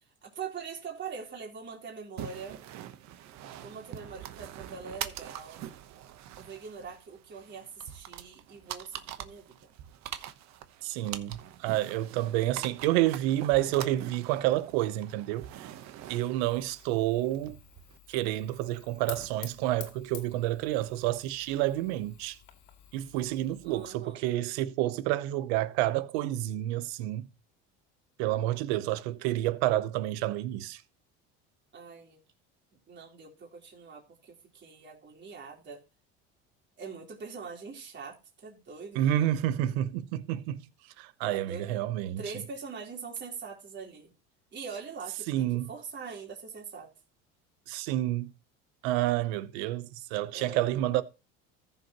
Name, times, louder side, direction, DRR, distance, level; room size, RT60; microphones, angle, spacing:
voice 1, 0.2-2.6 3.6-5.7 6.4-9.7 23.6-24.3 31.7-32.2 32.9-35.8 36.8-39.0 41.2-41.7 42.2-44.1 44.5-46.9 50.3-50.8, right 5 dB, 35° right, 3.8 m, -43 dB
sound 1, 2.2-18.0, right 12 dB, 65° right, 1.1 m, -44 dB
voice 2, 10.8-15.7 16.1-17.6 18.1-22.4 22.9-27.3 28.2-30.8 39.0-40.6 41.0-42.2 45.3-45.7 47.7-48.3 48.8-51.0, right 14 dB, 85° right, 0.9 m, -29 dB
Fire, 16.4-23.9, left 10 dB, 75° left, 2.3 m, -50 dB
14.5 x 6.9 x 3.0 m
supercardioid pair, 100°, 30 cm